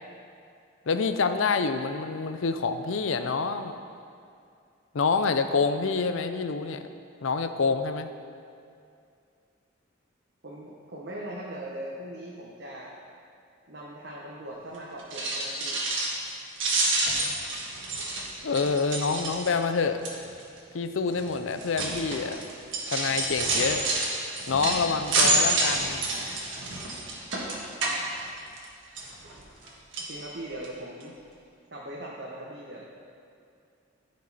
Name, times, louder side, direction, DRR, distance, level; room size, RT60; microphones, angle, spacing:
voice 1, 0.9-3.8 4.9-6.8 7.2-8.1 18.4-20.0 20.7-22.4 22.9-23.8 24.5-26.0, left 4 dB, 85° left, 9 dB, 0.5 m, -27 dB
voice 2, 10.4-12.9 13.7-15.8 30.0-31.2 31.7-32.9, right 1 dB, 55° right, -5 dB, 1.1 m, -40 dB
sound 1, 15.0-16.3 16.6-19.7 20.0-20.4 21.1-28.7 29.0-29.7 29.9-30.1 30.6-30.7 31.0-31.1, right 2 dB, 75° right, 1.6 m, -28 dB
15.5 x 5.2 x 4.1 m, 2.4 s
head